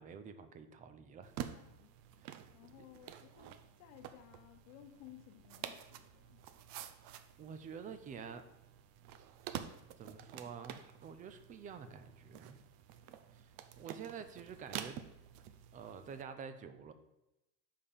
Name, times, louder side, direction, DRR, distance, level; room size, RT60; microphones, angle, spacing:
voice 1, 0.0-1.3 2.2-2.5 7.4-8.5 9.6-12.6 13.3-15.0 15.7-16.9, right 6 dB, 20° right, 10 dB, 0.4 m, -49 dB
sound 1, 1.2-16.2, right 10 dB, 60° right, 0.6 m, -49 dB
voice 2, 1.5-1.9 2.5-6.4, left 12 dB, 75° left, 4 dB, 0.9 m, -58 dB
6.6 x 5.6 x 5.2 m, 0.92 s
cardioid pair, 170°, 40 cm